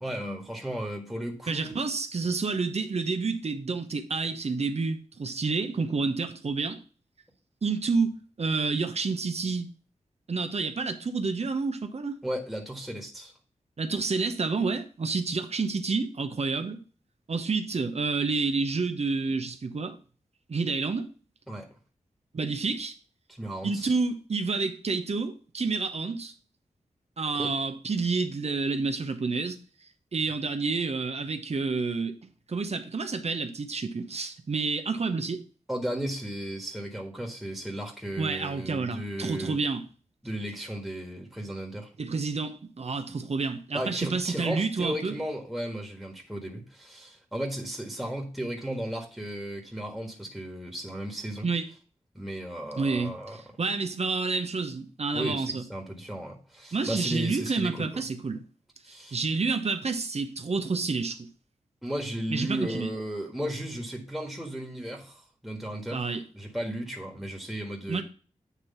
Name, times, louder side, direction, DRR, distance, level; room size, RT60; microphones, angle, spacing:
voice 1, 0.0-1.7 12.2-13.3 21.5-21.7 23.4-23.9 27.4-27.5 35.7-39.6 40.2-41.9 43.7-51.5 52.1-53.4 55.1-58.0 58.8-59.2 61.8-66.1 66.3-68.0, right 1 dB, ahead, 1.7 m, -35 dB
voice 2, 1.5-6.8 7.6-9.7 10.3-12.2 13.8-16.8 17.3-20.0 20.5-21.1 22.3-22.9 23.6-26.3 27.2-29.6 30.1-32.1 32.5-35.4 38.2-39.8 42.0-45.2 51.4-51.7 52.8-55.6 56.7-58.4 59.1-61.3 62.3-62.9 65.9-66.2 67.9-68.0, right 4 dB, 55° right, 1.0 m, -29 dB
8.4 x 3.0 x 5.6 m
cardioid pair, 40°, 13 cm